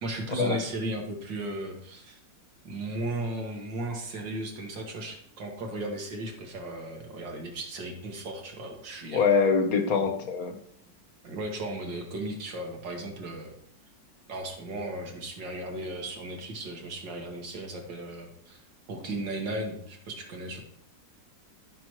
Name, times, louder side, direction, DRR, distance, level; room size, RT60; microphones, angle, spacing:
voice 1, 0.0-2.2 2.6-9.3 9.9-10.0 11.2-13.5 14.3-18.6 18.9-20.6, right 1 dB, 75° right, 1 dB, 2.2 m, -36 dB
voice 2, 9.1-10.6, left 5 dB, 55° left, 6 dB, 1.3 m, -24 dB
12.5 x 6.0 x 3.1 m, 0.70 s
omnidirectional pair, 2.0 m